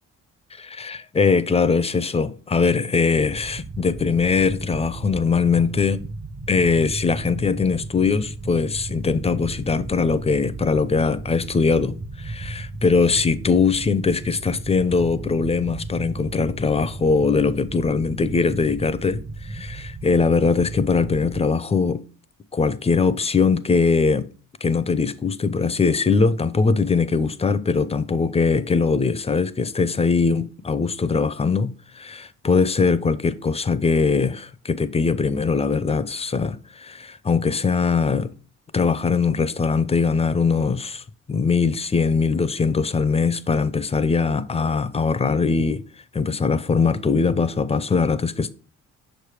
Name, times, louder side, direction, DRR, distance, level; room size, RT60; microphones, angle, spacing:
voice 1, 0.5-6.0 6.5-22.0 22.5-24.3 24.6-38.3 38.7-45.8 46.1-48.5, left 4 dB, 20° left, 0.4 m, -21 dB
sound 1, 3.1-21.4, right 2 dB, 30° right, 0.8 m, -35 dB
6.3 x 3.3 x 4.8 m
cardioid pair, 90°, 30 cm